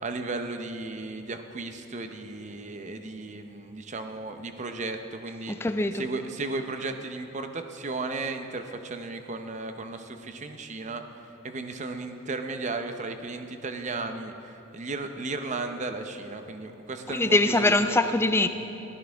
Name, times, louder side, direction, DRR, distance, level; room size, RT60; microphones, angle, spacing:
voice 1, 0.0-5.6 5.9-11.0 11.4-18.1, right 3 dB, 35° right, 7 dB, 0.6 m, -35 dB
voice 2, 5.5-6.0 17.1-18.5, left 2 dB, 10° left, 9 dB, 0.4 m, -23 dB
15.0 x 13.0 x 3.5 m, 2.9 s
head